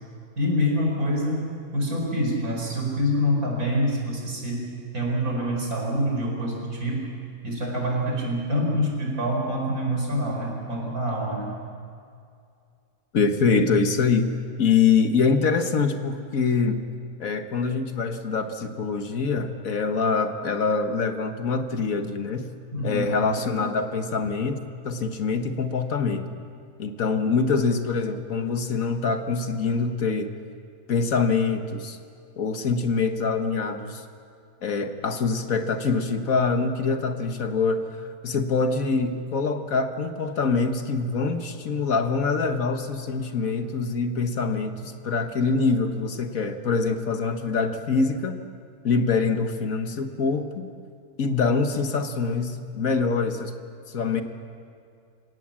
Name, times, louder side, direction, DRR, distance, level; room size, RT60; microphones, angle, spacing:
voice 1, 0.4-4.7 4.9-7.1 7.4-11.5 22.7-23.1, equal, 75° right, -1 dB, 5.3 m, -26 dB
voice 2, 13.1-14.3 14.6-16.8 17.2-22.5 22.8-24.6 24.8-26.3 26.8-30.3 30.9-32.0 32.4-34.0 34.6-37.8 38.2-48.4 48.8-50.7 51.2-53.5 53.9-54.2, left 4 dB, 65° left, 7 dB, 1.7 m, -24 dB
25.5 x 17.5 x 7.4 m, 2.4 s
omnidirectional pair, 1.6 m